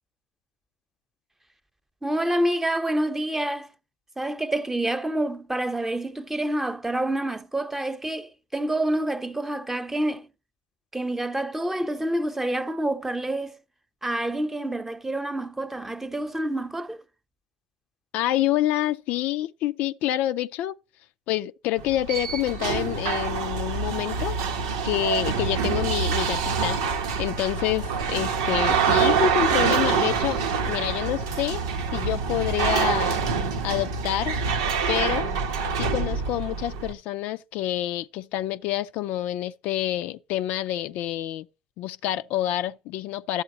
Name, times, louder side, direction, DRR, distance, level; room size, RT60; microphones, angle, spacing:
voice 1, 2.0-3.7 4.2-10.3 10.9-13.6 14.0-17.0, right 1 dB, 10° right, 0.9 m, -27 dB
voice 2, 18.1-20.8 21.3-24.3 24.8-26.8 27.2-31.6 31.9-33.2 33.6-34.4 34.9-35.4 35.8-41.5 41.8-43.4, left 14 dB, 70° left, 0.5 m, -27 dB
sound 1, 21.8-36.9, right 6 dB, 85° right, 0.9 m, -26 dB
11.5 x 7.8 x 2.8 m
hypercardioid pair, 65°, 3 cm